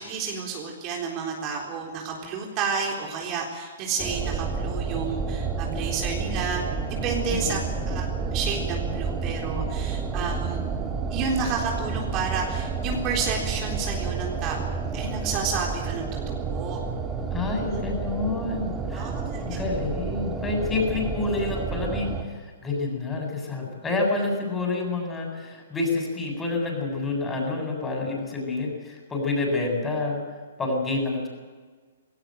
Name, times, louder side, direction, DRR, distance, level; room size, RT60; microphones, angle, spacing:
voice 1, 0.0-7.6 7.9-10.6 11.1-16.8 17.7-17.8 18.9-19.6, right 5 dB, 35° right, 0 dB, 3.8 m, -31 dB
sound 1, 4.0-22.2, right 5 dB, 15° right, 2.8 m, -30 dB
voice 2, 17.3-19.1 19.4-30.2 30.6-31.3, left 3 dB, 15° left, 1 dB, 8.0 m, -28 dB
19.5 x 18.0 x 9.3 m, 1.5 s
figure-of-eight pair, 120°, 0 cm